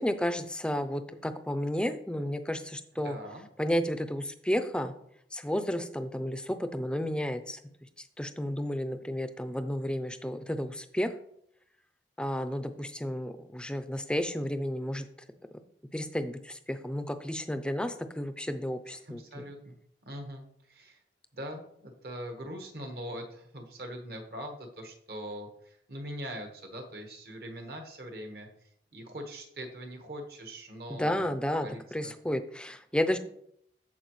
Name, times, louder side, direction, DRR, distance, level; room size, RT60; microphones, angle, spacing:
voice 1, 0.0-3.2 3.6-4.9 5.3-7.6 8.2-11.1 12.2-15.1 15.9-19.4 31.0-33.2, equal, 5° left, 9 dB, 0.4 m, -32 dB
voice 2, 2.9-3.5 18.9-19.8 20.0-21.0 21.3-31.3 31.6-32.1, equal, 60° right, 3 dB, 1.3 m, -42 dB
13.5 x 4.7 x 3.1 m, 0.71 s
head